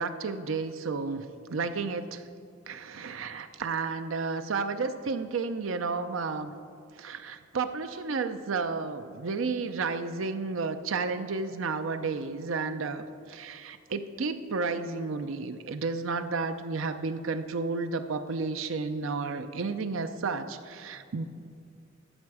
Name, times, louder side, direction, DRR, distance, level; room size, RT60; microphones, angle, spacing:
voice 1, 0.0-2.2 2.7-6.5 7.0-21.2, right 4 dB, 75° right, 10 dB, 0.6 m, -32 dB
13.0 x 7.0 x 4.8 m, 2.3 s
head